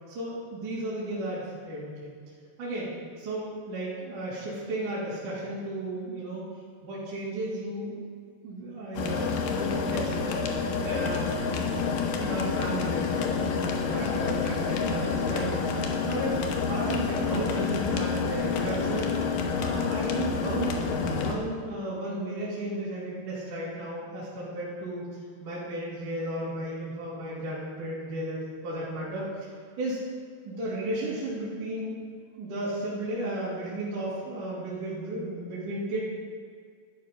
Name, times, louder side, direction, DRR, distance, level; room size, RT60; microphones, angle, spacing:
voice 1, 0.1-2.1 2.6-6.4 6.8-8.0 8.4-10.4 10.8-11.3 12.2-15.8 16.1-19.1 19.6-25.0 25.4-29.5 29.8-30.0 30.5-32.0 32.4-36.0, right 1 dB, 55° right, -9 dB, 4.0 m, -34 dB
sound 1, 8.9-21.4, left 5 dB, 70° left, 2.3 m, -28 dB
12.5 x 9.8 x 5.4 m, 2.1 s
omnidirectional pair, 4.8 m